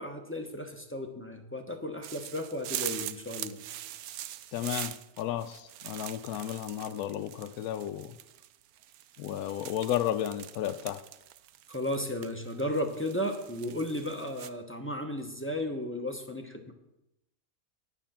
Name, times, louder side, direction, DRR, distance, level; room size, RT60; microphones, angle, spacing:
voice 1, 0.0-3.6 11.7-16.7, left 1 dB, 10° left, 0.8 m, -34 dB
sound 1, 2.0-14.5, right 12 dB, 75° right, 1.0 m, -42 dB
voice 2, 4.5-8.1 9.2-11.0, left 11 dB, 80° left, 1.1 m, -33 dB
9.3 x 9.0 x 5.8 m
omnidirectional pair, 1.6 m